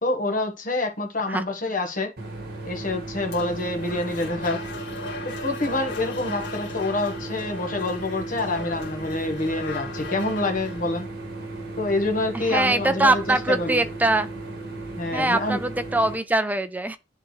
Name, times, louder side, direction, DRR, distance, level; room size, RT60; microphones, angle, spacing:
voice 1, 0.0-2.1 2.6-4.6 5.2-11.1 11.8-13.8 15.0-15.6, left 2 dB, 45° left, 1.4 m, -27 dB
sound 1, 2.2-16.1, right 2 dB, 55° right, 1.9 m, -36 dB
sound 2, 3.2-11.0, left 3 dB, 85° left, 2.0 m, -38 dB
voice 2, 12.3-14.3 15.1-17.0, right 2 dB, 10° right, 0.5 m, -22 dB
10.5 x 3.7 x 3.2 m
head